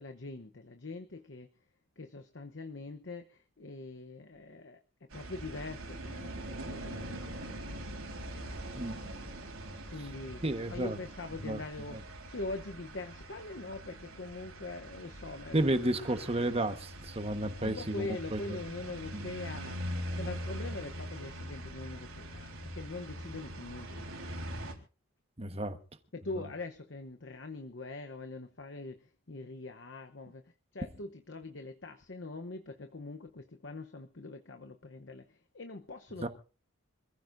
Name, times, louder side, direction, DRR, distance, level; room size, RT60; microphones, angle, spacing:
voice 1, 0.0-1.5 2.0-4.8 5.1-7.8 9.9-10.4 10.7-12.0 12.3-15.6 17.6-19.8 20.1-24.1 26.1-30.4 30.7-35.2 35.5-36.3, left 3 dB, 55° left, 0.9 m, -43 dB
sound 1, 5.1-24.7, right 1 dB, 85° right, 4.0 m, -42 dB
voice 2, 10.4-11.0 11.4-11.6 11.9-12.0 15.5-18.6 19.1-19.3 25.4-25.8 26.4-26.5 36.2-36.3, right 1 dB, 30° right, 1.2 m, -32 dB
26.0 x 15.5 x 2.6 m
head